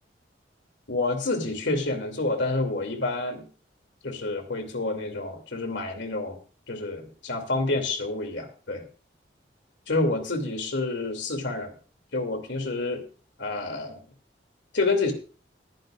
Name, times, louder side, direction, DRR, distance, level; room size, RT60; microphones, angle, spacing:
voice 1, 0.9-3.4 4.0-6.4 6.7-8.8 9.9-11.7 12.1-13.0 13.4-14.0 14.7-15.1, left 2 dB, 80° left, 5 dB, 2.7 m, -28 dB
20.5 x 10.0 x 2.5 m, 0.36 s
head